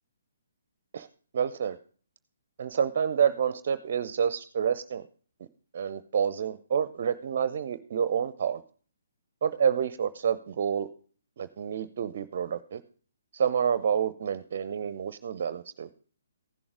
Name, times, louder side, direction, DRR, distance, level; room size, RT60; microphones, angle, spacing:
voice 1, 1.3-1.8 2.6-5.1 5.7-8.6 9.4-10.9 11.4-12.8 13.3-15.9, right 7 dB, 50° right, 15 dB, 0.6 m, -28 dB
15.5 x 7.0 x 5.0 m, 0.43 s
figure-of-eight pair, 135°, 0 cm